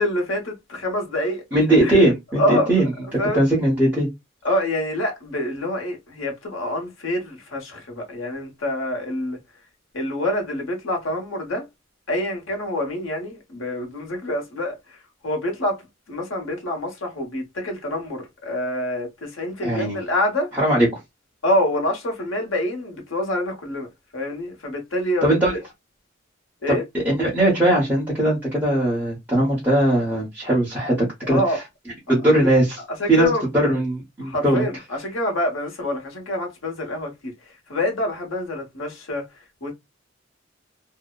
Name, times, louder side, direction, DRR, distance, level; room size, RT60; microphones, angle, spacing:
voice 1, 0.0-1.5 1.8-2.0 2.4-2.7 3.2-3.4 4.4-9.4 9.9-11.6 12.1-15.8 16.1-20.5 21.4-25.3 26.6-26.8 31.2-31.6 32.3-32.5 33.0-33.4 34.2-37.3 37.7-39.7, left 1 dB, 85° left, 1.0 m, -26 dB
voice 2, 1.5-2.9 3.3-4.1 19.6-20.0 20.5-20.9 25.2-25.5 26.7-31.4 32.1-32.8 33.1-34.6, right 1 dB, 10° right, 0.9 m, -19 dB
2.7 x 2.0 x 2.2 m
head